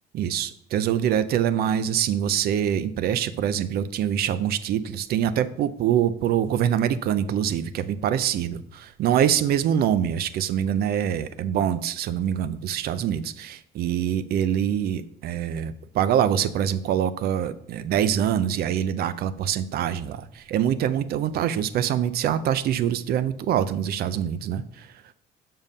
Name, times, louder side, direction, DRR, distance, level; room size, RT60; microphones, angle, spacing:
voice 1, 0.1-24.9, right 9 dB, 70° right, 14 dB, 0.6 m, -24 dB
7.1 x 5.6 x 5.3 m, 0.68 s
cardioid pair, 110°, 17 cm